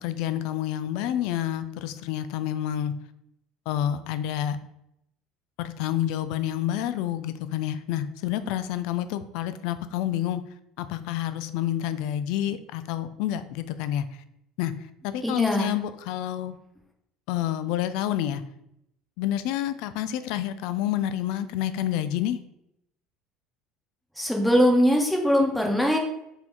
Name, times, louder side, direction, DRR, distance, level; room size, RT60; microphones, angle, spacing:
voice 1, 0.0-2.9 3.7-4.6 5.6-10.4 10.8-14.1 14.6-14.7 15.0-16.6 17.3-18.4 19.2-22.4, left 11 dB, 70° left, 12 dB, 0.3 m, -28 dB
voice 2, 15.2-15.7 24.2-26.0, equal, 5° left, 1 dB, 1.1 m, -21 dB
4.1 x 2.8 x 3.7 m, 0.80 s
hypercardioid pair, 80°, 0 cm